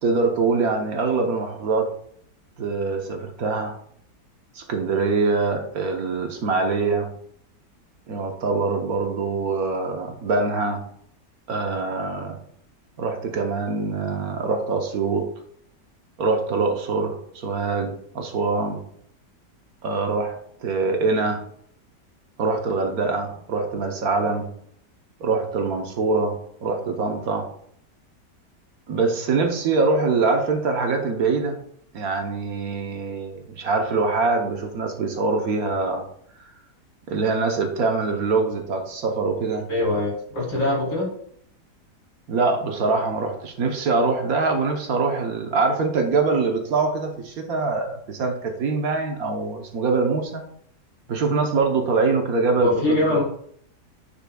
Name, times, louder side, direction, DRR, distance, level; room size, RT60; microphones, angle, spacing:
voice 1, 0.0-1.9 2.6-3.8 4.5-7.1 8.1-10.8 11.5-12.4 13.0-15.3 16.2-18.8 19.8-21.4 22.4-24.5 25.2-27.5 28.9-31.6 31.9-36.0 37.1-39.7 42.3-50.4 51.1-53.2, right 4 dB, 60° right, 3 dB, 1.3 m, -24 dB
voice 2, 39.7-41.1 52.6-53.2, left 1 dB, 75° left, -4 dB, 4.0 m, -23 dB
10.0 x 5.9 x 2.3 m, 0.64 s
omnidirectional pair, 1.8 m